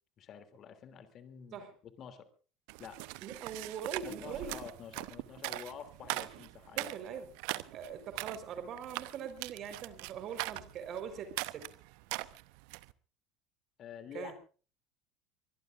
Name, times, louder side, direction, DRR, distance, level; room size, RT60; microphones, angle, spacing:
voice 1, 0.2-1.7 2.0-2.3 2.8-3.0 4.0-6.9 13.8-14.3, left 8 dB, 45° left, 9 dB, 2.9 m, -48 dB
sound 1, 2.7-12.9, right 22 dB, 65° right, 0.9 m, -41 dB
voice 2, 3.2-4.5 6.8-7.3 7.7-11.7 14.1-14.3, right 7 dB, 50° right, 9 dB, 4.3 m, -42 dB
24.0 x 21.0 x 2.6 m, 0.39 s
hypercardioid pair, 70°, 0 cm